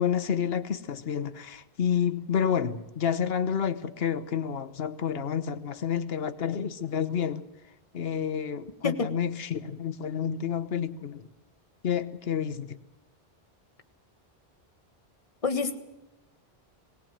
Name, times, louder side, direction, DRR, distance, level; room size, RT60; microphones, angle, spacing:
voice 1, 0.0-7.4 7.9-11.3 11.8-12.8, left 8 dB, 70° left, 1.2 m, -29 dB
voice 2, 15.4-15.8, left 4 dB, 35° left, 1.4 m, -27 dB
19.0 x 18.5 x 7.6 m
omnidirectional pair, 1.1 m